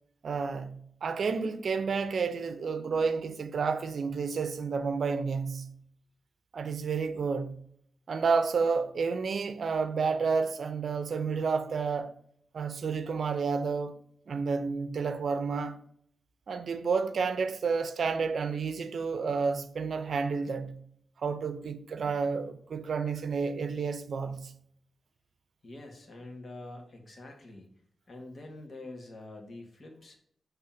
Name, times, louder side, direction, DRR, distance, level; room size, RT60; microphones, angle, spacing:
voice 1, 0.2-5.7 6.5-7.6 8.1-12.1 12.5-13.9 14.3-15.8 16.5-20.8 21.2-24.5, right 5 dB, 70° right, 0.6 m, -30 dB
voice 2, 25.6-27.7 28.1-30.2, left 2 dB, 45° left, 1.8 m, -46 dB
7.3 x 3.4 x 5.8 m
wide cardioid pair, 100°, 0 cm